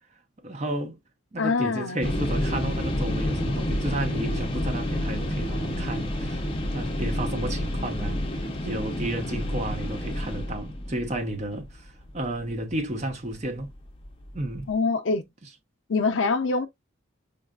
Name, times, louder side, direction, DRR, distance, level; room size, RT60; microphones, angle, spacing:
voice 1, 0.4-1.0 1.3-13.7 14.3-14.7, right 1 dB, 35° right, 0.7 m, -32 dB
voice 2, 1.4-2.0 14.7-15.2 15.9-16.7, left 4 dB, 70° left, 0.5 m, -24 dB
sound 1, 2.0-12.9 13.4-13.5 13.9-14.7, left 1 dB, 25° left, 0.7 m, -29 dB
5.2 x 2.4 x 2.3 m
head